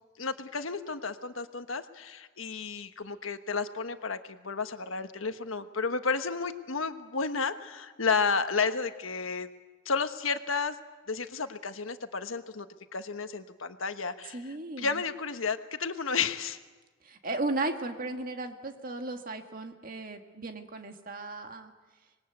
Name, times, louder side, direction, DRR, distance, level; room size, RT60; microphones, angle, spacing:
voice 1, 0.2-9.5 9.8-10.8 11.1-12.7 12.9-14.4 14.8-16.6, left 5 dB, 90° left, 9 dB, 1.3 m, -32 dB
voice 2, 14.3-15.0 17.0-21.7, right 2 dB, 45° right, 5 dB, 1.9 m, -35 dB
26.0 x 20.5 x 8.1 m, 1.3 s
head